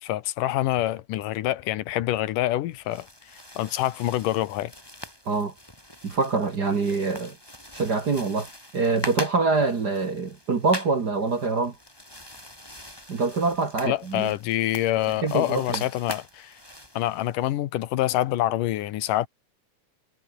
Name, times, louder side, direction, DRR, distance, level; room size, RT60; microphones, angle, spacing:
voice 1, 0.0-4.7 13.9-16.6 16.9-19.3, left 14 dB, 85° left, 2.6 m, -26 dB
sound 1, 2.7-17.5, left 1 dB, 5° left, 6.2 m, -42 dB
voice 2, 6.0-7.4 7.7-11.8 13.1-14.3 15.2-15.8, right 4 dB, 35° right, 1.9 m, -25 dB
omnidirectional pair, 3.7 m